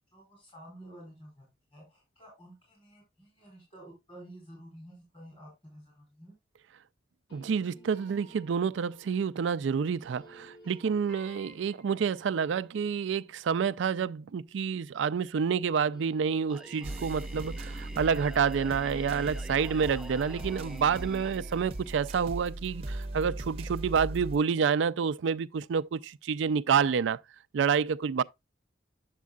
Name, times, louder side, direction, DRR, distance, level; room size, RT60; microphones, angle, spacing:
voice 1, 0.1-6.3, right 1 dB, 30° left, 4.8 m, -51 dB
sound 1, 7.3-15.4 15.7-20.6, right 1 dB, 75° left, 4.8 m, -58 dB
voice 2, 7.3-27.2 27.5-28.2, right 6 dB, 75° right, 0.4 m, -28 dB
Singing, 16.5-22.4, equal, 5° right, 0.4 m, -47 dB
sound 2, 16.8-24.4, right 1 dB, 30° right, 0.7 m, -39 dB
9.3 x 7.3 x 2.3 m
head